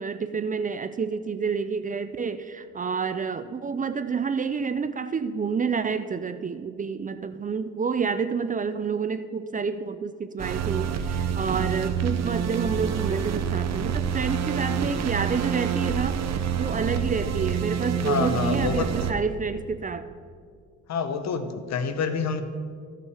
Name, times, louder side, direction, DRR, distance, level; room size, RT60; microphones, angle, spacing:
voice 1, 0.0-20.1, right 5 dB, 25° right, 11 dB, 0.4 m, -29 dB
sound 1, 10.4-19.1, right 7 dB, 60° right, 0.8 m, -27 dB
voice 2, 18.0-18.9 20.9-22.4, left 5 dB, 60° left, 9 dB, 0.9 m, -27 dB
15.0 x 5.7 x 4.8 m, 2.1 s
cardioid pair, 90°, 30 cm